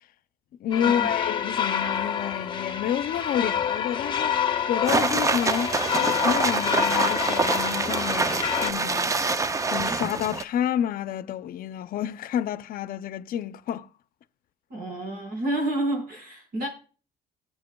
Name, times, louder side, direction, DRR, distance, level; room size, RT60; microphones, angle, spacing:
voice 1, 0.6-4.4 4.7-9.2 9.7-13.9, left 10 dB, 60° left, 0.6 m, -29 dB
sound 1, 0.7-8.7, left 8 dB, 30° left, 0.8 m, -27 dB
sound 2, 4.8-10.4, right 3 dB, 20° right, 0.5 m, -25 dB
voice 2, 14.7-16.7, right 1 dB, 60° right, 4.8 m, -29 dB
18.5 x 7.4 x 2.3 m
cardioid pair, 110°, 17 cm